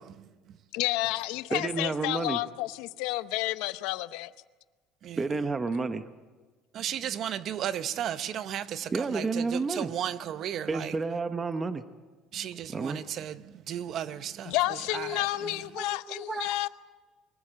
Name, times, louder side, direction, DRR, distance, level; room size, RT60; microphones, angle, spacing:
voice 1, 0.7-4.3 5.8-5.9 14.5-16.7, left 18 dB, 80° left, 0.7 m, -30 dB
voice 2, 1.5-2.4 5.2-6.1 8.9-9.9 10.7-11.8 12.7-13.0 15.1-15.5 15.8-16.5, right 4 dB, 20° right, 0.9 m, -31 dB
voice 3, 6.7-10.9 12.3-14.6 14.9-15.6, right 10 dB, 45° right, 0.8 m, -34 dB
24.0 x 15.0 x 7.5 m
cardioid pair, 140°, 0 cm